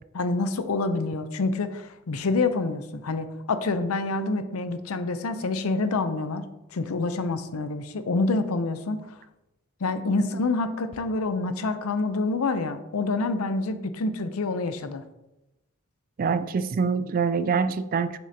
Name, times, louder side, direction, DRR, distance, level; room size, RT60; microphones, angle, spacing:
voice 1, 0.1-9.0 9.8-15.0, left 3 dB, 80° left, 10 dB, 0.6 m, -27 dB
voice 2, 16.2-18.2, right 5 dB, 40° right, 13 dB, 0.3 m, -25 dB
6.7 x 6.5 x 2.8 m, 0.97 s
head